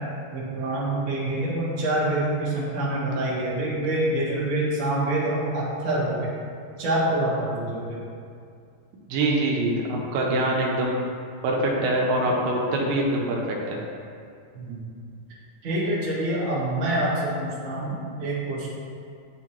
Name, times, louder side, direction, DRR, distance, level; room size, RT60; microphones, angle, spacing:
voice 1, 0.3-6.3 6.8-8.0 14.5-14.8 15.6-18.7, right 1 dB, 60° right, -9 dB, 0.6 m, -26 dB
voice 2, 9.1-11.0 11.4-13.8, right 1 dB, 75° right, -2 dB, 2.3 m, -24 dB
10.0 x 3.7 x 2.9 m, 2.3 s
omnidirectional pair, 4.1 m